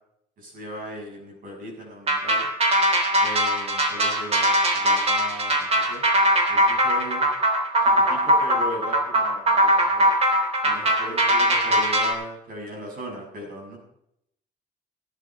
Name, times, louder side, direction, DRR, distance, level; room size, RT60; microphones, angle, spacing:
voice 1, 0.4-2.5 3.2-6.0 6.5-7.2 7.8-10.1 10.6-13.8, equal, 55° right, 1 dB, 6.7 m, -38 dB
sound 1, 2.1-12.1, right 1 dB, 35° right, 3.2 m, -21 dB
16.0 x 10.5 x 4.6 m, 0.75 s
cardioid pair, 110°, 17 cm